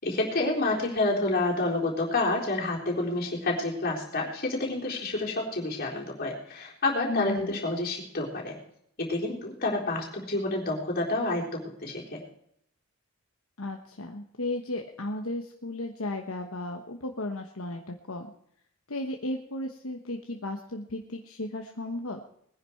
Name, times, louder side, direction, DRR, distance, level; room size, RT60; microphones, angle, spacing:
voice 1, 0.0-8.6 9.0-12.2, left 2 dB, 45° left, -2 dB, 3.9 m, -29 dB
voice 2, 7.1-7.6 13.6-18.3 18.9-22.2, left 2 dB, 65° left, 3 dB, 1.2 m, -35 dB
20.5 x 10.5 x 4.6 m, 0.71 s
head